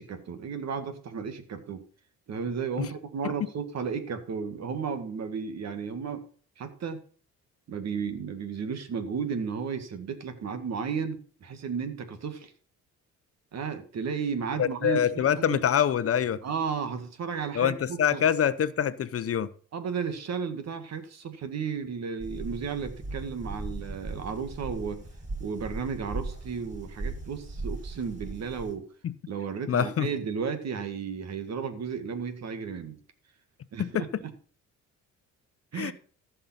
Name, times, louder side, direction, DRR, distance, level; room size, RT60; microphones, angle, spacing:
voice 1, 0.0-1.8 2.3-6.3 6.6-7.0 7.7-12.5 13.5-15.6 16.4-18.2 19.7-25.0 25.4-28.9 29.3-33.0 33.7-34.3 35.7-35.9, right 6 dB, 60° right, 2.0 m, -34 dB
voice 2, 14.6-16.4 17.5-19.5 29.0-29.1 29.7-30.1 33.8-34.2 35.7-35.9, left 9 dB, 50° left, 0.8 m, -25 dB
sound 1, 22.2-28.7, right 2 dB, 25° right, 7.0 m, -38 dB
14.5 x 5.6 x 5.8 m
cardioid pair, 90°, 30 cm